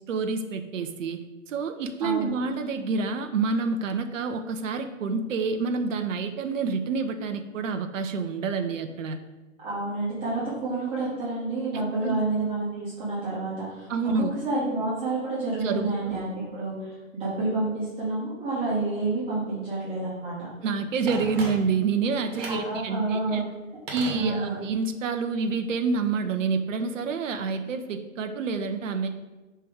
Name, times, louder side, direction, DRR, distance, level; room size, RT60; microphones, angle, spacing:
voice 1, 0.1-1.2 1.5-9.2 11.7-12.2 13.9-14.3 15.6-16.2 20.6-23.4 23.9-29.1, right 4 dB, 70° right, 7 dB, 0.7 m, -28 dB
voice 2, 2.0-2.3 9.6-20.3 22.5-23.4 24.1-24.6, right 2 dB, 15° right, -10 dB, 1.5 m, -29 dB
Telephone, 21.1-21.9 22.3-22.7 23.9-24.7 25.0-25.1, right 2 dB, 30° right, 1.6 m, -37 dB
5.9 x 3.3 x 4.8 m, 1.1 s
hypercardioid pair, 145°, 40 cm